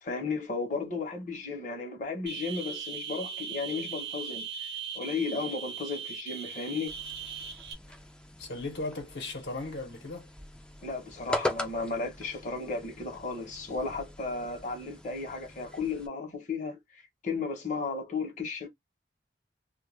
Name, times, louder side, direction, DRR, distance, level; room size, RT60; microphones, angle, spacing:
voice 1, 0.0-4.7 4.9-7.0 10.8-18.7, left 4 dB, 45° left, 0.8 m, -34 dB
sound 1, 2.3-7.7, right 6 dB, 65° right, 0.8 m, -39 dB
sound 2, 6.9-16.1, left 1 dB, 5° left, 0.4 m, -40 dB
voice 2, 8.4-10.3, left 2 dB, 70° left, 0.8 m, -37 dB
2.2 x 2.2 x 3.0 m
head